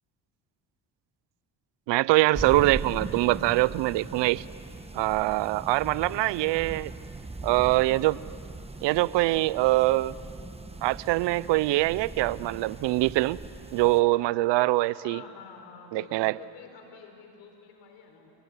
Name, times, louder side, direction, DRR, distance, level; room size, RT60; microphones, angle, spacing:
voice 1, 1.9-4.4 4.9-6.9 7.4-8.2 8.8-10.1 10.8-13.4 13.7-15.2 15.9-16.4, right 18 dB, 75° right, 20 dB, 0.6 m, -24 dB
sound 1, 2.3-14.0, right 2 dB, 15° right, 1.3 m, -40 dB
voice 2, 5.3-6.6 14.8-18.3, left 6 dB, 80° left, 4 dB, 4.7 m, -50 dB
28.0 x 20.0 x 9.8 m, 2.8 s
supercardioid pair, 80°, 43 cm